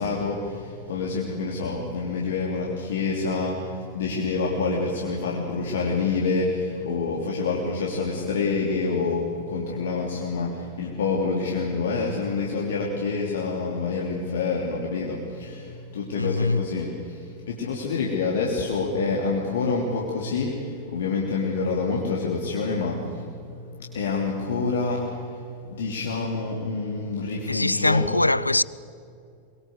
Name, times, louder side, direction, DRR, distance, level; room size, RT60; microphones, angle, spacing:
voice 1, 0.0-28.1, left 4 dB, 60° left, 3.1 m, -27 dB
voice 2, 16.2-16.6 27.5-28.6, left 2 dB, 85° left, 0.5 m, -22 dB
24.0 x 22.0 x 8.0 m
figure-of-eight pair, 90°, 0 cm